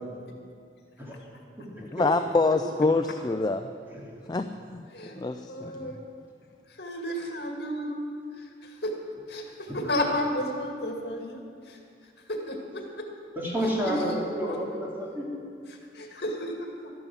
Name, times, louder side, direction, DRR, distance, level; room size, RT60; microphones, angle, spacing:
voice 1, 1.9-3.7 4.3-4.8 5.2-5.9, left 3 dB, 25° left, 8 dB, 0.4 m, -26 dB
voice 2, 5.5-6.0 6.8-8.1 8.4-8.9 9.3-11.8 12.3-13.1 13.8-13.9 14.4-14.6 15.7-16.9, equal, 65° left, 2 dB, 2.0 m, -33 dB
voice 3, 13.3-15.4, equal, 10° right, -4 dB, 3.0 m, -30 dB
12.5 x 11.0 x 7.4 m, 2.3 s
head